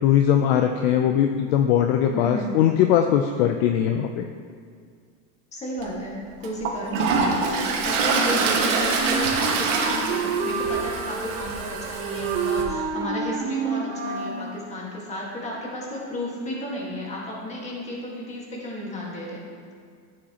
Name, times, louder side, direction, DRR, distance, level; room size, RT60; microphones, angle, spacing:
voice 1, 0.0-4.2, left 9 dB, 50° left, 6 dB, 0.5 m, -20 dB
voice 2, 2.1-2.6 5.5-19.5, left 1 dB, 15° left, -3 dB, 1.6 m, -33 dB
Toilet flush, 5.8-5.9 6.4-12.6, right 4 dB, 70° right, 1.7 m, -25 dB
Wind instrument woodwind instrument, 8.6-14.4, right 5 dB, 35° right, 0.9 m, -29 dB
13.0 x 7.6 x 2.9 m, 2.1 s
supercardioid pair, 160°, 39 cm